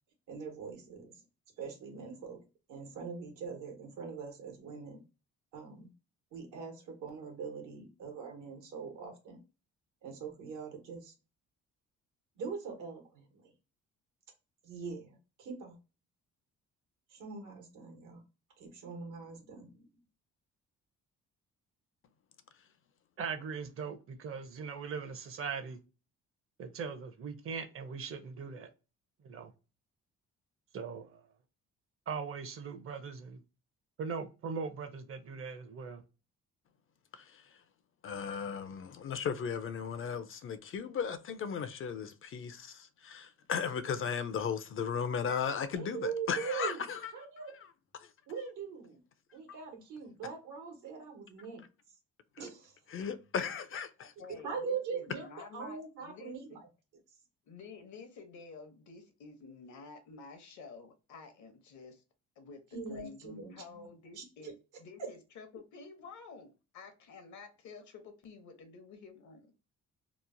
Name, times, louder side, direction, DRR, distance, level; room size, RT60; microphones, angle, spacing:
voice 1, 0.3-1.2 1.6-2.4 2.7-5.0 5.5-5.9 6.3-9.4 10.0-11.1 12.4-13.5 14.6-15.8 17.1-18.2 18.6-19.9 45.7-46.9 47.1-47.5 48.3-49.0 49.3-51.6 52.4-52.7 54.4-56.6 62.7-63.5 64.2-64.5 65.0-65.1, right 6 dB, 85° right, 1.1 m, -42 dB
voice 2, 23.2-25.8 26.6-28.7 29.2-29.5 30.7-31.2 32.1-33.4 34.0-36.0, right 5 dB, 45° right, 0.6 m, -40 dB
voice 3, 38.0-47.1 52.4-52.5 52.9-53.9, left 6 dB, 45° left, 0.4 m, -36 dB
voice 4, 54.0-56.4 57.5-62.0 62.4-64.5 64.8-69.5, left 4 dB, 70° left, 0.8 m, -51 dB
2.9 x 2.0 x 2.5 m
cardioid pair, 90°, 30 cm